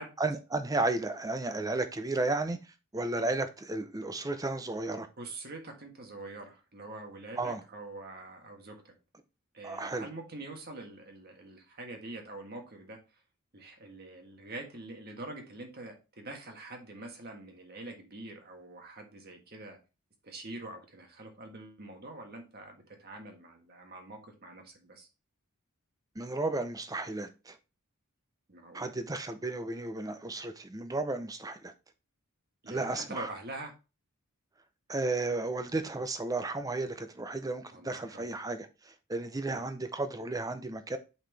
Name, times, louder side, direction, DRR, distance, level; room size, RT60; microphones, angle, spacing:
voice 1, 0.2-2.6 2.9-5.1 7.4-7.6 9.6-10.1 26.2-27.6 28.7-31.7 32.7-33.3 34.9-41.0, right 2 dB, 15° right, 0.6 m, -33 dB
voice 2, 5.2-8.9 9.5-13.0 13.5-19.8 20.2-25.1 28.5-28.9 32.6-33.7 37.7-38.3 39.5-39.6, right 2 dB, 45° right, 1.5 m, -45 dB
5.9 x 5.4 x 3.3 m
head